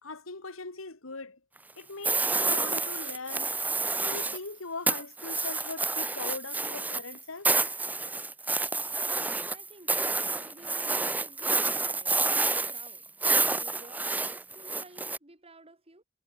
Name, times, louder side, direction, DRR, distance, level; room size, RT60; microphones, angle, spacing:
voice 1, 0.0-1.4 1.8-3.6 4.0-7.5, left 3 dB, 85° left, 2.4 m, -40 dB
sound 1, 2.0-4.5 4.9-15.2, right 3 dB, 10° right, 0.6 m, -29 dB
voice 2, 9.1-13.1 13.6-16.0, right 2 dB, 30° right, 3.6 m, -53 dB
head